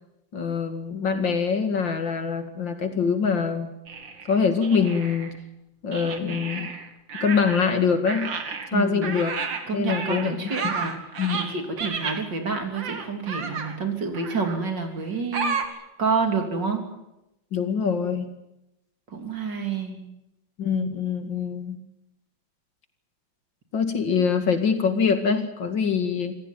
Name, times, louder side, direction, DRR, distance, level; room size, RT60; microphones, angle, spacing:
voice 1, 0.3-3.7 4.3-5.3 5.8-6.7 7.2-8.3 8.7-9.3 9.7-10.5 11.2-11.4 17.5-18.3 20.6-21.8 23.7-26.4, left 6 dB, 80° left, 7 dB, 2.9 m, -24 dB
sound 1, 3.9-5.4 5.9-7.8 8.1-12.2 12.7-13.8 14.1-14.6 15.3-15.7, right 5 dB, 90° right, 2.8 m, -32 dB
voice 2, 8.7-9.2 9.7-11.0 11.5-16.9 19.1-20.1, right 4 dB, 70° right, 4 dB, 3.9 m, -28 dB
26.0 x 16.0 x 9.3 m, 0.90 s
omnidirectional pair, 2.0 m